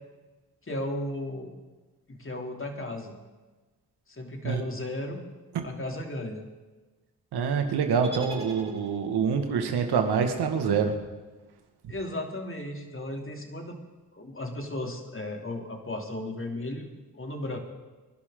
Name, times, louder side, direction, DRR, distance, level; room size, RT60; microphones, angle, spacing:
voice 1, 0.6-1.5 2.1-3.1 4.1-5.2 5.6-6.4 11.9-13.8 14.1-16.9 17.1-17.6, left 1 dB, 30° left, 2 dB, 3.2 m, -35 dB
voice 2, 7.3-11.0 11.8-11.9, right 6 dB, 80° right, 5 dB, 2.0 m, -26 dB
sound 1, 8.0-9.3, right 2 dB, 15° right, 4.5 m, -42 dB
24.5 x 11.5 x 3.9 m, 1.2 s
supercardioid pair, 45°, 39 cm